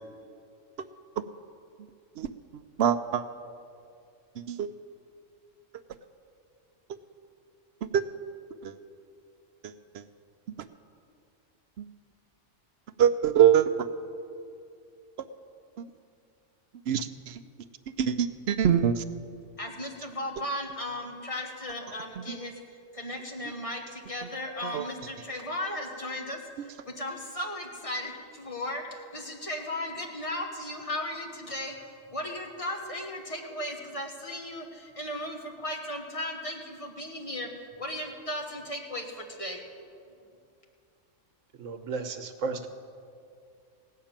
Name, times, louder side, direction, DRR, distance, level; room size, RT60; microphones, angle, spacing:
voice 1, 2.8-3.2 4.5-4.7 7.9-8.0 8.6-8.7 13.0-13.9 16.9-17.4 18.0-19.0 24.6-24.8, right 9 dB, 65° right, 11 dB, 0.8 m, -23 dB
voice 2, 19.6-22.5 22.9-31.8 32.1-37.5 37.8-39.6, left 1 dB, 30° left, 1 dB, 1.4 m, -36 dB
voice 3, 41.6-42.7, right 4 dB, 85° right, 7 dB, 1.3 m, -34 dB
17.0 x 6.6 x 8.8 m, 2.5 s
omnidirectional pair, 1.3 m